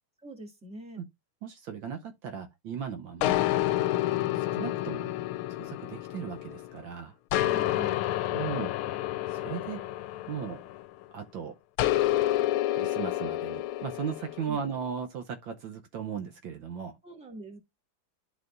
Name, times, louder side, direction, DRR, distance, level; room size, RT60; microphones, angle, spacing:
voice 1, 0.2-1.0 7.3-8.1 14.5-14.6 17.0-17.6, right 1 dB, 5° right, 1.7 m, -44 dB
voice 2, 1.4-3.4 3.7-5.2 5.5-7.1 8.3-9.8 10.3-10.6 11.1-11.6 12.7-17.0, right 7 dB, 65° right, 1.5 m, -37 dB
sound 1, 3.2-6.8 7.3-11.0 11.8-14.5, left 15 dB, 80° left, 1.4 m, -29 dB
12.5 x 4.1 x 2.5 m
omnidirectional pair, 2.4 m